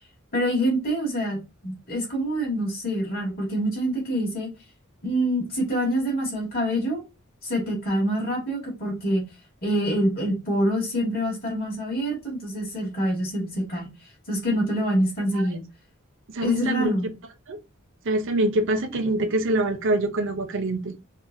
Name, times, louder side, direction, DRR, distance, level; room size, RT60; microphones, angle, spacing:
voice 1, 0.3-4.5 5.0-7.0 7.4-9.3 9.6-13.9 14.3-15.6 16.4-17.1, equal, 45° left, 1.9 m, -26 dB
voice 2, 16.3-16.9 17.5-17.6 18.1-20.9, right 2 dB, 60° right, 0.6 m, -25 dB
4.3 x 2.2 x 2.5 m
head